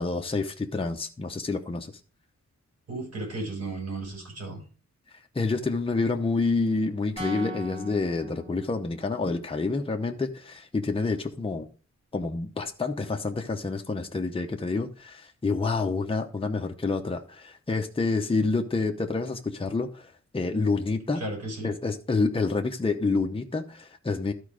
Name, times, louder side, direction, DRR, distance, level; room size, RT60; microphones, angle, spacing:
voice 1, 0.0-1.9 5.3-11.7 12.1-21.2 21.6-24.3, left 3 dB, 20° left, 3 dB, 0.8 m, -28 dB
voice 2, 2.9-4.6 21.1-21.7, right 2 dB, 55° right, -1 dB, 6.1 m, -34 dB
sound 1, 7.2-9.3, equal, 20° right, 3.4 m, -39 dB
12.5 x 4.7 x 4.9 m, 0.37 s
wide cardioid pair, 170°, 29 cm